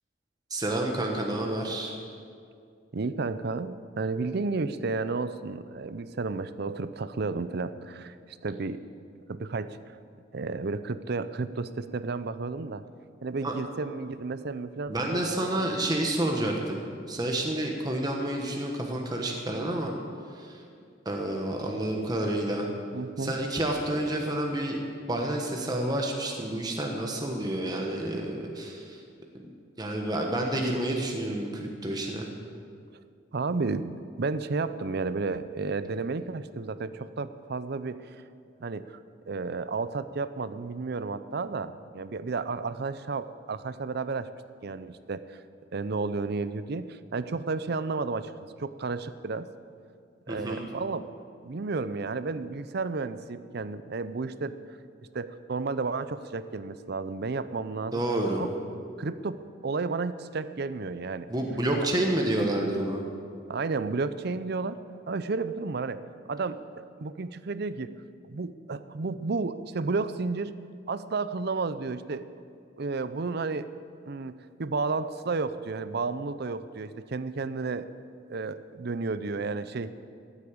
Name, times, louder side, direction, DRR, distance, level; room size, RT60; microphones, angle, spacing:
voice 1, 0.5-1.9 13.4-13.5 14.9-19.9 20.3-20.6 21.0-22.7 23.2-24.8 25.1-29.0 29.8-32.3 50.3-50.7 57.9-58.4 61.3-63.0, right 1 dB, 20° right, 1 dB, 1.3 m, -29 dB
voice 2, 2.9-8.1 8.4-8.8 9.3-9.8 10.3-12.8 13.2-15.7 22.9-23.3 33.3-38.2 38.6-38.8 39.3-44.3 44.6-45.4 45.7-48.3 48.6-49.5 50.3-51.1 51.4-54.5 55.1-58.0 58.4-58.5 59.0-61.3 61.8-61.9 63.5-64.8 65.1-66.0 66.3-67.9 68.3-70.6 70.9-72.2 72.8-73.7 74.1-77.9 78.3-79.9, right 4 dB, 55° right, 13 dB, 0.6 m, -32 dB
14.5 x 8.3 x 8.6 m, 2.3 s
head